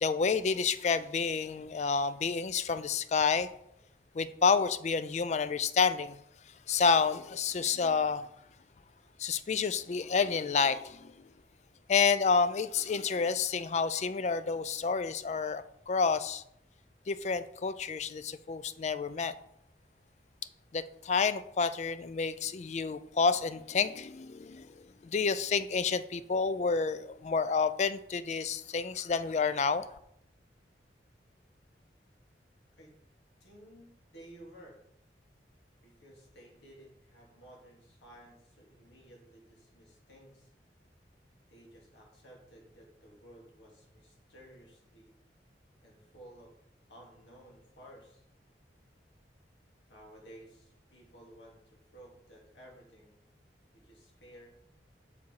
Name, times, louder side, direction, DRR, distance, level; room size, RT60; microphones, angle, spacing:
voice 1, 0.0-3.5 4.1-6.2 6.7-8.3 9.2-11.3 11.9-16.4 17.1-19.3 20.7-29.9, left 5 dB, 40° left, 0.3 m, -29 dB
voice 2, 33.4-34.8 35.8-40.5 41.5-45.2 45.8-46.5 46.9-48.2 49.9-53.2 53.7-54.5, right 1 dB, 85° left, 2.6 m, -55 dB
6.8 x 4.9 x 4.7 m
head